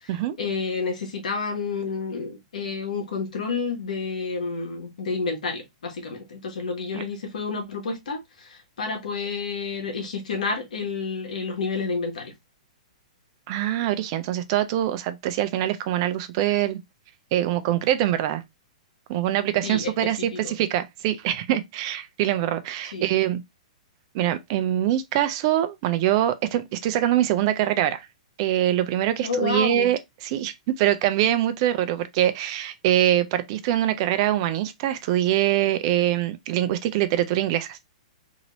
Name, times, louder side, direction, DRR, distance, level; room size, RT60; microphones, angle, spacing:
voice 1, 0.0-12.3 19.6-20.5 22.9-23.1 29.2-29.9, left 4 dB, 80° left, 1.2 m, -30 dB
voice 2, 13.5-16.8 17.3-18.4 19.1-23.4 24.1-28.1 28.4-37.8, right 12 dB, 45° right, 0.5 m, -24 dB
2.9 x 2.6 x 3.0 m
hypercardioid pair, 140°, 4 cm